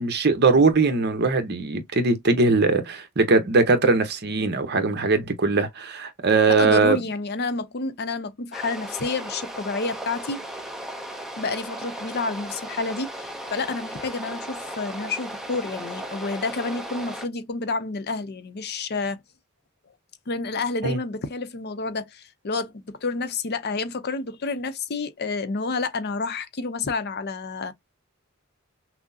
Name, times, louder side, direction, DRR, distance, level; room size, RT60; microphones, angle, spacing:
voice 1, 0.0-7.0 20.8-21.0, right 3 dB, 50° right, 0.9 m, -20 dB
voice 2, 6.5-10.4 11.4-19.2 20.3-27.7, left 3 dB, 50° left, 0.6 m, -29 dB
sound 1, 8.5-17.3, right 1 dB, ahead, 0.7 m, -36 dB
5.9 x 2.1 x 2.7 m
head